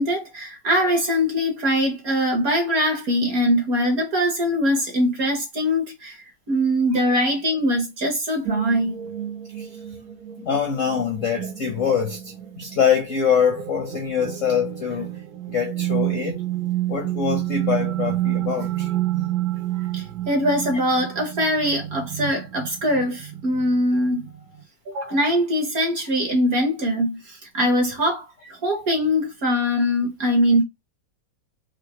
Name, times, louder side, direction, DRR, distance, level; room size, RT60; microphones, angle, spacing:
voice 1, 0.0-6.2 6.5-8.9 19.9-24.3 24.9-30.6, equal, 50° right, 1.3 m, -22 dB
sound 1, 8.5-24.6, right 14 dB, 80° right, 0.8 m, -30 dB
voice 2, 10.4-12.2 12.6-15.2 15.5-16.4 16.9-18.9, left 7 dB, 55° left, 0.9 m, -24 dB
4.8 x 2.5 x 2.9 m
omnidirectional pair, 2.3 m